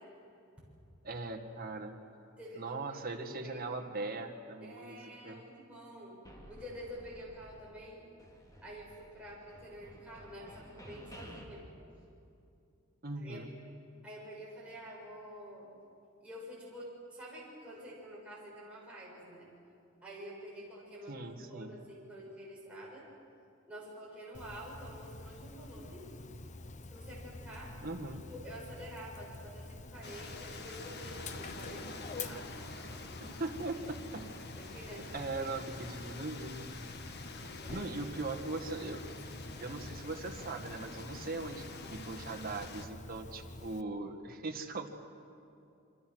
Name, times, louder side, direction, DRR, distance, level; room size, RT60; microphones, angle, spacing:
voice 1, 1.0-2.0 2.6-5.4 13.0-13.5 21.1-21.8 27.8-28.2 33.4-34.2 35.1-36.8 37.7-39.0 39.6-45.0, right 3 dB, 45° right, 3 dB, 1.9 m, -40 dB
voice 2, 2.4-3.7 4.6-6.2 6.5-8.1 8.6-11.7 13.2-13.4 14.0-15.7 16.2-19.5 20.0-23.0 23.7-26.1 26.9-27.7 28.3-33.5 34.6-35.8 37.6-38.1, equal, 5° right, -6 dB, 6.9 m, -48 dB
sound 1, 6.2-7.9 8.2-11.4, equal, 15° left, 2.5 m, -53 dB
Dog, 24.3-43.8, left 2 dB, 35° left, 0.8 m, -48 dB
sound 2, 30.0-42.9, left 3 dB, 50° left, 1.5 m, -47 dB
28.0 x 24.5 x 6.4 m, 2.6 s
head